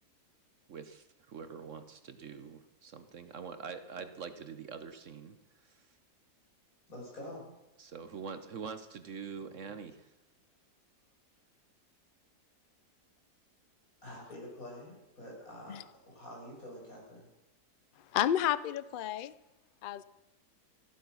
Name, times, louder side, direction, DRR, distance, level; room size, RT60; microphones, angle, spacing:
voice 1, 0.7-5.4 5.6-5.8 7.8-10.1, right 6 dB, 55° right, 10 dB, 1.1 m, -44 dB
voice 2, 6.9-7.4 14.0-17.2, left 1 dB, 60° left, -3 dB, 6.7 m, -47 dB
voice 3, 18.1-19.3 19.8-20.0, left 11 dB, 85° left, 16 dB, 0.4 m, -31 dB
15.0 x 12.0 x 6.2 m, 0.97 s
omnidirectional pair, 1.7 m